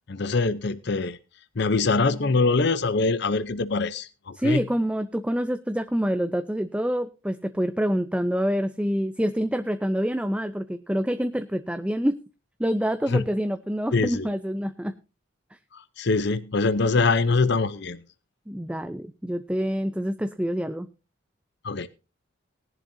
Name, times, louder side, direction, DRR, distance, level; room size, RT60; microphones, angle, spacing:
voice 1, 0.1-1.2 1.6-4.6 13.1-13.2 13.9-14.3 15.7-18.0 21.6-21.9, left 3 dB, 55° left, 0.7 m, -23 dB
voice 2, 4.3-12.2 12.6-14.9 18.5-20.9, equal, 5° right, 0.5 m, -26 dB
19.0 x 11.0 x 2.7 m
head